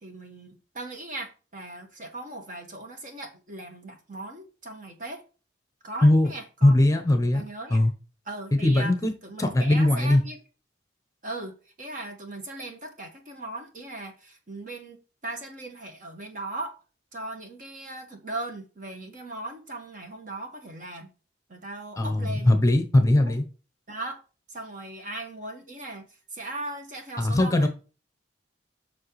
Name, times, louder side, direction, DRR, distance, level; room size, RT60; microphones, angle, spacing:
voice 1, 0.0-5.2 5.8-6.7 7.3-7.8 8.2-8.9 9.2-10.4 11.2-16.7 17.1-21.1 21.5-22.6 23.2-23.3 23.9-24.2 24.5-26.1 26.3-27.7, right 2 dB, 45° right, 1.7 m, -38 dB
voice 2, 6.6-7.4 7.7-7.9 8.6-9.1 9.4-10.2 22.0-23.4 27.2-27.7, left 1 dB, 15° left, 0.9 m, -20 dB
7.6 x 6.2 x 3.2 m
head